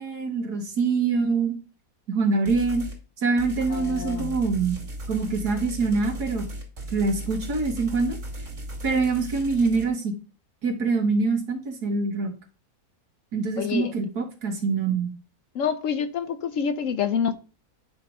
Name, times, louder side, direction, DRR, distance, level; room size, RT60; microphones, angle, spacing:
voice 1, 0.0-1.6 2.1-2.9 3.2-4.8 5.1-6.5 6.9-8.2 8.8-10.1 10.6-12.3 13.3-15.1, right 4 dB, 90° right, 2.1 m, -24 dB
sound 1, 2.5-3.0 3.4-9.8, right 1 dB, 50° right, 2.5 m, -36 dB
voice 2, 3.7-4.4 13.6-13.9 15.5-17.3, left 7 dB, 65° left, 0.8 m, -27 dB
9.3 x 3.2 x 5.3 m
omnidirectional pair, 1.7 m